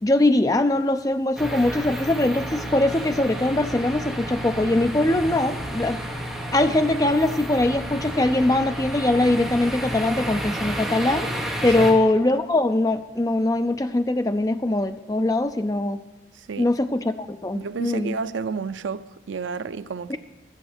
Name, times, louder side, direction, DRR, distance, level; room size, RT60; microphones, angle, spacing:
voice 1, 0.0-6.0 6.5-11.3 11.6-16.0 16.6-18.2 20.1-20.2, left 2 dB, 20° left, 0.5 m, -22 dB
sound 1, 1.4-11.9, right 1 dB, ahead, 1.5 m, -31 dB
voice 2, 16.3-16.7 17.5-20.2, right 5 dB, 80° right, 0.5 m, -31 dB
11.5 x 7.4 x 8.0 m
head